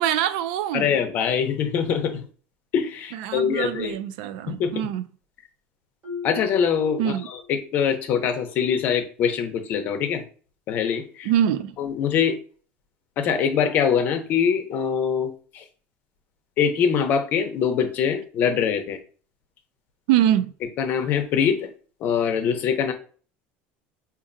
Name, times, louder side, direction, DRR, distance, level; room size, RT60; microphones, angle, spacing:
voice 1, 0.0-0.9 3.1-5.0 7.0-7.3 11.2-11.8 20.1-20.5, right 11 dB, 85° right, 0.4 m, -24 dB
voice 2, 0.7-2.2 2.7-4.0 4.5-4.7 6.2-10.2 10.7-11.3 11.8-12.3 13.2-15.6 16.6-19.0 20.8-21.7 22.0-22.9, left 7 dB, 45° left, 0.7 m, -23 dB
Marimba xylophone, 6.0-7.8, left 6 dB, 35° right, 1.3 m, -38 dB
5.1 x 2.6 x 2.6 m
cardioid pair, 160°, 5 cm